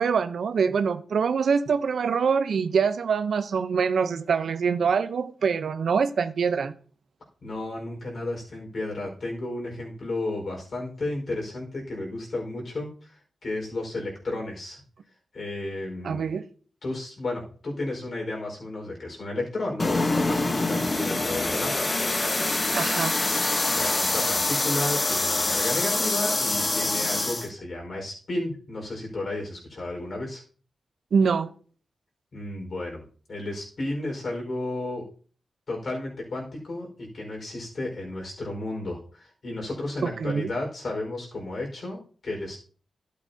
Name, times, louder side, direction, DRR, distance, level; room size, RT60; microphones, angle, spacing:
voice 1, 0.0-6.7 16.0-16.4 22.7-23.2 31.1-31.5 40.0-40.5, right 6 dB, 75° right, 0.8 m, -24 dB
voice 2, 7.4-13.1 13.4-14.8 15.3-16.3 16.8-21.8 23.7-30.4 32.3-35.0 35.7-42.6, left 2 dB, 55° left, 4.8 m, -33 dB
sound 1, 19.8-27.5, left 2 dB, 30° left, 1.1 m, -25 dB
12.0 x 8.6 x 2.8 m
cardioid pair, 85°, 0 cm